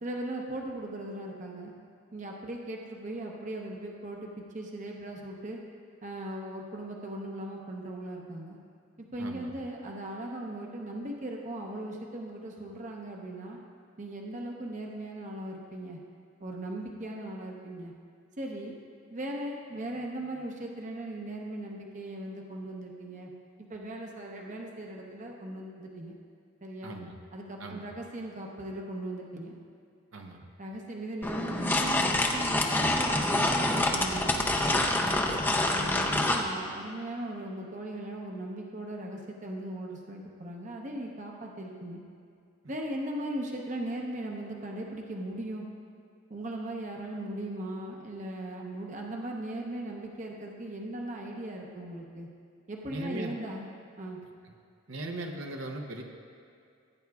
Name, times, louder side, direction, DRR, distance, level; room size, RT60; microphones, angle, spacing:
voice 1, 0.0-1.7 2.1-5.6 6.0-8.6 9.1-13.6 14.0-16.0 16.4-17.9 18.4-18.8 19.1-23.3 23.7-26.2 26.6-26.9 27.3-29.5 30.6-34.5 34.9-42.0 42.7-45.7 46.3-52.3 52.7-53.7 54.0-54.2, right 1 dB, 35° right, 0 dB, 0.8 m, -38 dB
voice 2, 9.2-9.5 26.8-27.2 27.6-27.9 30.1-30.5 35.3-35.5 42.6-42.7 52.9-53.3 54.9-56.0, right 2 dB, 70° right, 2 dB, 0.8 m, -39 dB
sound 1, 31.2-36.5, left 1 dB, 10° left, 0.5 m, -26 dB
16.0 x 9.2 x 2.3 m, 2.3 s
head